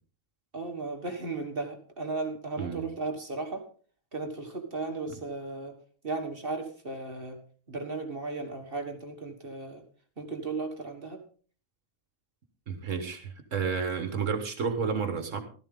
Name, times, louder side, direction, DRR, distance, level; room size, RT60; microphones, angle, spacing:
voice 1, 0.5-3.6 4.1-5.8 6.0-7.4 7.7-9.8 10.2-11.2, right 3 dB, 45° right, 4 dB, 1.7 m, -35 dB
voice 2, 2.6-2.9 5.1-5.2 12.7-15.4, right 5 dB, 70° right, 8 dB, 1.7 m, -31 dB
14.5 x 13.5 x 3.7 m, 0.42 s
omnidirectional pair, 1.4 m